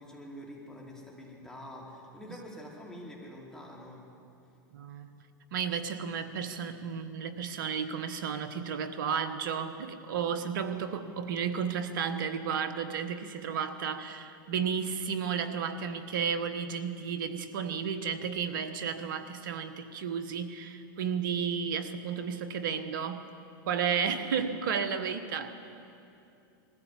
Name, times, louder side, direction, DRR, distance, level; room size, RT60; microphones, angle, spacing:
voice 1, 0.0-4.0, equal, 5° left, -3 dB, 4.7 m, -46 dB
voice 2, 4.7-5.2 5.5-23.3 23.6-25.5, right 7 dB, 70° right, 10 dB, 1.4 m, -33 dB
21.0 x 15.0 x 8.4 m, 2.7 s
hypercardioid pair, 100°, 11 cm